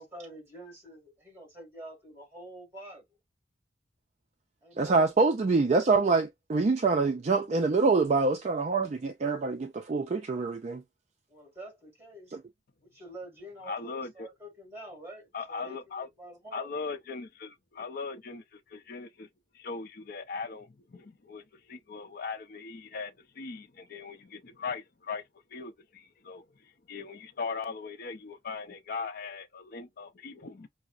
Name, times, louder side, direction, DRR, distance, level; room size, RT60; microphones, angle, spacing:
voice 1, 0.0-3.0 4.6-5.1 11.3-12.4 12.8-16.7, right 1 dB, 15° right, 1.9 m, -47 dB
voice 2, 4.8-10.8, right 4 dB, 35° right, 0.3 m, -25 dB
voice 3, 13.6-14.3 15.3-16.1 16.5-19.3 19.5-25.2 25.5-30.7, left 4 dB, 50° left, 0.5 m, -39 dB
5.6 x 2.0 x 2.4 m
head